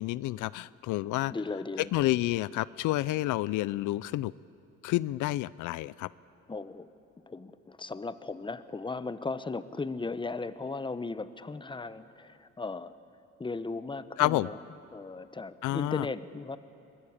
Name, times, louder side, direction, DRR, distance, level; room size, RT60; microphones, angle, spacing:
voice 1, 0.0-1.3 1.8-4.3 4.8-6.1 14.2-14.5 15.6-16.1, left 17 dB, 85° left, 19 dB, 0.5 m, -29 dB
voice 2, 1.3-1.9 6.5-6.9 7.3-12.9 13.4-14.6 14.9-16.6, left 3 dB, 15° left, 13 dB, 0.9 m, -36 dB
23.0 x 19.5 x 8.7 m, 2.7 s
cardioid pair, 90°, 30 cm